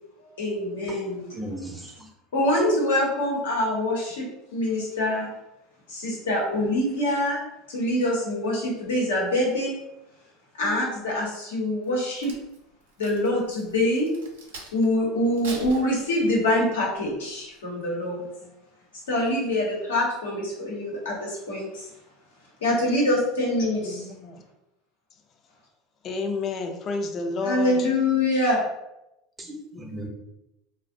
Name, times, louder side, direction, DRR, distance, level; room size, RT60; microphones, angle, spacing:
voice 1, 0.4-1.2 2.3-4.3 4.5-5.3 5.9-7.4 7.7-9.7 10.6-12.3 13.0-14.1 14.7-18.2 19.1-21.9 22.6-24.1 27.4-28.6, left 1 dB, 90° left, -3 dB, 0.8 m, -25 dB
voice 2, 0.9-2.1 29.4-30.1, right 1 dB, 15° right, 1 dB, 0.5 m, -37 dB
Crack, 11.8-14.9 15.3-16.5 17.1-17.3, right 3 dB, 85° right, 0.5 m, -43 dB
voice 3, 23.8-24.3 26.0-27.8, left 4 dB, 45° left, 5 dB, 0.4 m, -30 dB
2.4 x 2.0 x 2.5 m, 0.90 s
hypercardioid pair, 90°, 0 cm